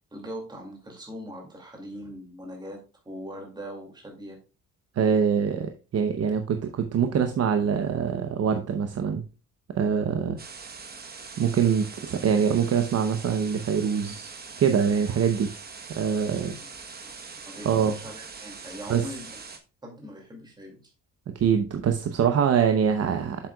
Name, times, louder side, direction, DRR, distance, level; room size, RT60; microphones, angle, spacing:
voice 1, 0.1-2.8 3.1-4.4 16.6-16.7 17.0-17.1 17.4-19.4 19.8-20.8, equal, 15° right, 2.3 m, -41 dB
voice 2, 5.0-9.2 9.7-10.4 11.4-14.3 14.6-15.5 15.9-16.5 17.6-18.0 18.9-19.1 21.3-23.5, right 7 dB, 50° right, 0.8 m, -24 dB
sound 1, 10.4-19.6, right 5 dB, 30° right, 1.1 m, -42 dB
7.7 x 7.4 x 2.3 m
cardioid pair, 150°, 33 cm